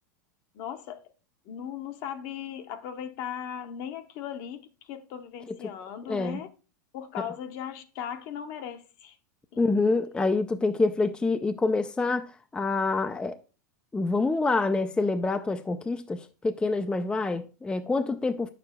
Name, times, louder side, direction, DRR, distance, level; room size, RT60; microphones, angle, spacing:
voice 1, 0.5-1.1 1.5-6.5 6.9-9.2 9.5-9.6, left 9 dB, 50° left, 0.9 m, -38 dB
voice 2, 6.1-6.4 9.6-12.3 12.5-13.4 13.9-18.5, left 3 dB, 10° left, 0.4 m, -26 dB
8.8 x 6.8 x 2.2 m
hypercardioid pair, 105°, 10 cm